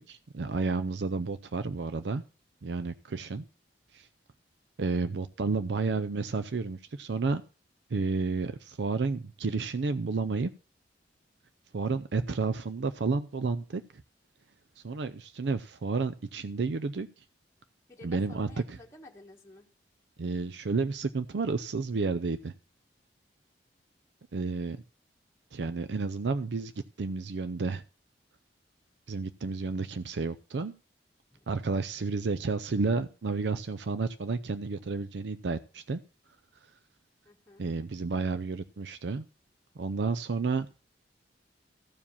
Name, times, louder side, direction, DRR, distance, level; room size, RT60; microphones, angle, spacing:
voice 1, 0.0-2.2 2.6-3.4 3.9-4.1 4.8-7.4 7.9-10.5 11.7-13.8 14.8-17.1 18.0-18.8 20.2-22.5 24.3-24.8 25.5-26.7 27.0-27.8 29.1-30.7 31.5-36.0 37.6-39.3 39.8-40.7, right 4 dB, 70° right, 12 dB, 0.5 m, -31 dB
voice 2, 17.9-19.7 31.3-31.4 37.2-37.7, left 2 dB, 15° left, -1 dB, 1.4 m, -52 dB
14.5 x 4.9 x 7.1 m, 0.36 s
head